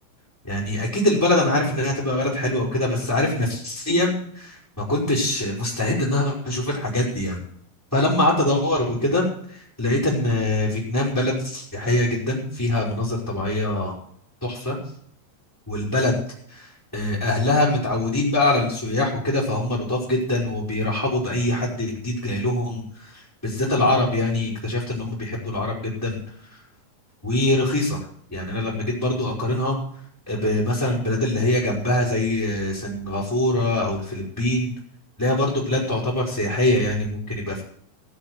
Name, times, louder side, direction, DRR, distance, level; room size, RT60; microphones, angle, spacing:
voice 1, 0.4-7.4 7.9-13.9 14.4-14.8 15.7-16.1 16.5-26.2 26.5-26.6 27.2-28.0 28.3-29.7 30.3-34.7 35.2-37.6, left 1 dB, 5° left, -3 dB, 3.8 m, -23 dB
16.5 x 7.3 x 8.0 m, 0.64 s
omnidirectional pair, 5.6 m